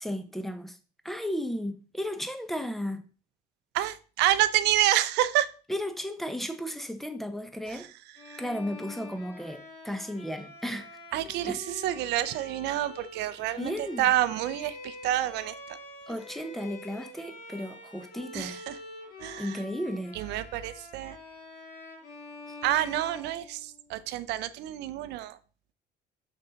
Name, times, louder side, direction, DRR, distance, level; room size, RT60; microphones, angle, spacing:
voice 1, 0.0-0.8 1.0-3.0 5.7-7.9 8.4-10.9 11.4-11.6 13.6-14.1 16.1-18.6 19.4-20.2 22.5-22.6, equal, ahead, 0.8 m, -34 dB
voice 2, 3.7-5.5 7.7-7.9 8.3-8.4 11.1-15.6 18.3-18.8 19.2-19.6 20.1-21.2 22.6-25.4, right 13 dB, 85° right, 0.5 m, -28 dB
Bowed string instrument, 8.2-24.0, left 2 dB, 90° left, 2.0 m, -46 dB
6.2 x 4.3 x 3.9 m
cardioid pair, 110°, 17 cm